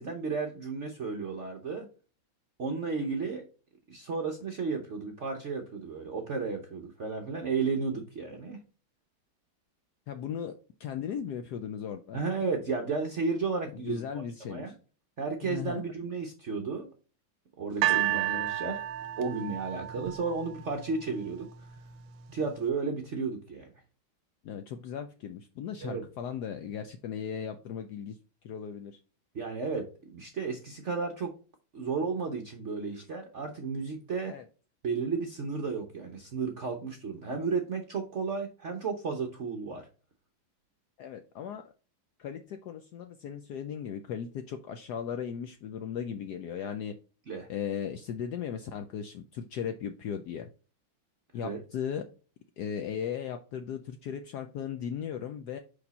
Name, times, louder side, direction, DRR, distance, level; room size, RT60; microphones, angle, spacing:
voice 1, 0.0-1.9 2.6-3.4 3.9-8.6 12.1-14.7 15.2-16.9 17.6-18.8 19.2-21.5 22.3-23.7 25.8-26.0 29.3-31.3 31.7-34.4 34.8-39.8 47.3-47.5 51.4-51.6, right 4 dB, 60° right, 3 dB, 0.7 m, -33 dB
voice 2, 10.1-10.5 10.8-12.2 13.7-14.7 15.4-15.8 24.4-28.2 28.4-29.0 34.2-34.5 41.0-41.7 42.2-46.9 47.5-50.5 51.3-52.0 52.6-55.6, left 8 dB, 75° left, 7 dB, 0.9 m, -37 dB
sound 1, 17.8-21.0 21.8-21.9, right 14 dB, 80° right, 1.3 m, -31 dB
5.2 x 4.9 x 4.0 m, 0.35 s
omnidirectional pair, 2.2 m